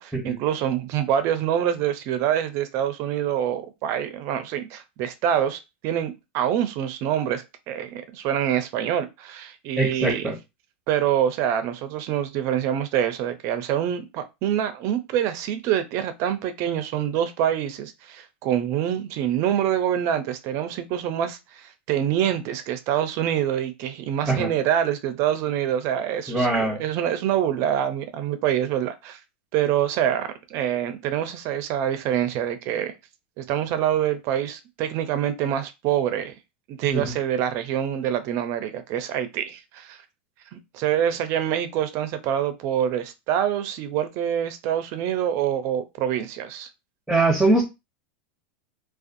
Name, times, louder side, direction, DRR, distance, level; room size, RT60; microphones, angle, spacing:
voice 1, 0.0-10.3 10.9-29.2 29.5-32.9 33.4-36.3 36.7-40.0 40.5-46.7, right 10 dB, 50° right, 0.5 m, -26 dB
voice 2, 9.8-10.3 24.3-24.5 26.3-26.8 36.9-37.0 47.1-47.6, right 2 dB, 5° right, 0.9 m, -22 dB
2.5 x 2.3 x 2.5 m
hypercardioid pair, 105°, 6 cm